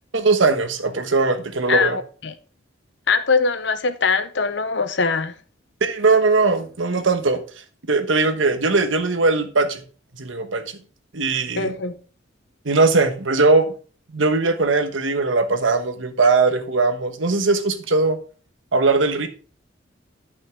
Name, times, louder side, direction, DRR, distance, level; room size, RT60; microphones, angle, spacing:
voice 1, 0.1-2.0 5.8-7.4 7.9-9.8 10.1-10.6 11.1-11.7 12.6-13.7 14.1-18.2 18.7-19.3, right 3 dB, 80° right, 1.2 m, -19 dB
voice 2, 1.7-2.3 3.1-5.3 11.6-11.9, left 4 dB, 65° left, 0.8 m, -22 dB
11.0 x 5.7 x 3.6 m
head